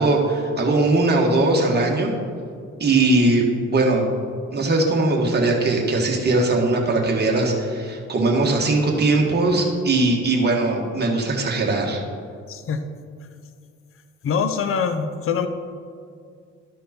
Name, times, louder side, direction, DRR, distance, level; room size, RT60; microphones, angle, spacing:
voice 1, 0.0-2.1 2.8-3.4 3.7-4.1 4.5-12.0, right 2 dB, 35° right, 0 dB, 1.7 m, -20 dB
voice 2, 12.5-12.8 14.2-15.5, left 6 dB, 45° left, 9 dB, 0.7 m, -24 dB
12.0 x 5.2 x 4.4 m, 2.2 s
cardioid pair, 90°, 30 cm